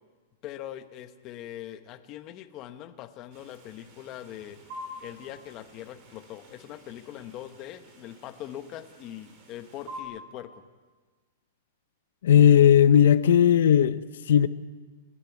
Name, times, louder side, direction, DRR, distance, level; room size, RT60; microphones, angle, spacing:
voice 1, 0.4-4.6 5.0-10.6, left 12 dB, 25° left, 1.0 m, -42 dB
sound 1, 3.3-10.0, equal, 30° right, 3.6 m, -47 dB
voice 2, 12.2-14.5, left 9 dB, 65° left, 0.7 m, -17 dB
29.5 x 10.5 x 9.3 m
supercardioid pair, 180°, 0 cm